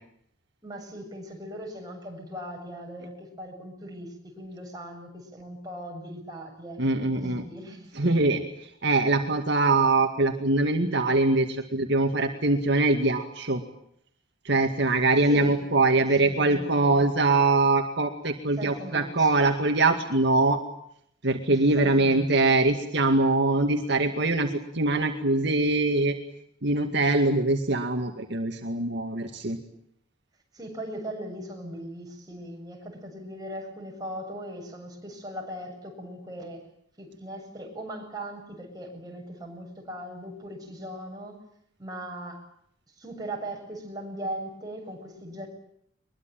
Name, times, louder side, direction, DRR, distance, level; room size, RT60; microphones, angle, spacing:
voice 1, 0.6-8.2 15.3-15.5 16.0-17.0 18.6-19.5 21.5-22.3 30.5-36.7 37.0-41.4 41.8-42.4 43.0-45.5, right 1 dB, 20° right, 1 dB, 7.6 m, -39 dB
voice 2, 6.8-7.4 7.9-8.4 8.8-13.6 14.4-20.6 21.2-26.2 26.6-29.6, right 2 dB, 65° right, 4 dB, 2.2 m, -23 dB
23.0 x 22.5 x 9.0 m, 0.70 s
head